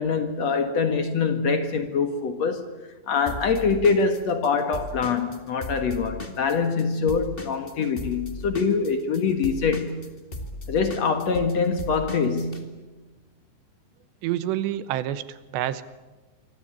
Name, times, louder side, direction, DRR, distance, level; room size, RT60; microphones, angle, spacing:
voice 1, 0.0-2.7 3.1-10.1 10.7-12.7, left 5 dB, 60° left, 1.8 m, -24 dB
Drum kit / Drum, 3.3-6.8 7.1-12.6, left 2 dB, 30° left, 1.0 m, -37 dB
voice 2, 14.2-15.8, right 12 dB, 80° right, 3.1 m, -28 dB
26.5 x 24.5 x 8.6 m
omnidirectional pair, 5.2 m